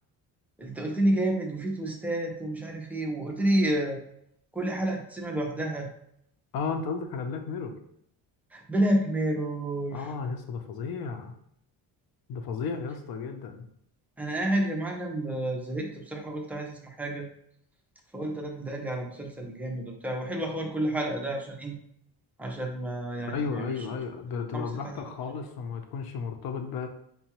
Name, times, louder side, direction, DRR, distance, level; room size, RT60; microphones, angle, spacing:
voice 1, 0.6-4.0 4.5-5.9 8.5-10.1 14.2-17.3 18.1-21.8 22.4-23.9 24.5-25.0, right 1 dB, 5° right, 1 dB, 0.4 m, -30 dB
voice 2, 6.5-7.7 9.9-11.3 12.3-13.7 23.3-26.9, left 5 dB, 60° left, 5 dB, 0.6 m, -33 dB
5.4 x 2.3 x 2.9 m, 0.72 s
cardioid pair, 170°, 41 cm